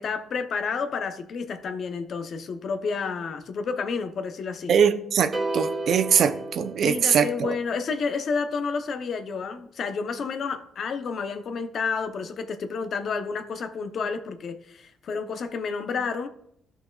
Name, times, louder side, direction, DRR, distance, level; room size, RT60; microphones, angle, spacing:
voice 1, 0.0-4.7 6.8-16.3, left 5 dB, 60° left, 0.8 m, -30 dB
voice 2, 4.7-7.6, right 7 dB, 65° right, 0.6 m, -22 dB
sound 1, 5.3-7.6, right 2 dB, 30° right, 1.7 m, -32 dB
13.5 x 6.0 x 2.4 m
cardioid pair, 90°, 0 cm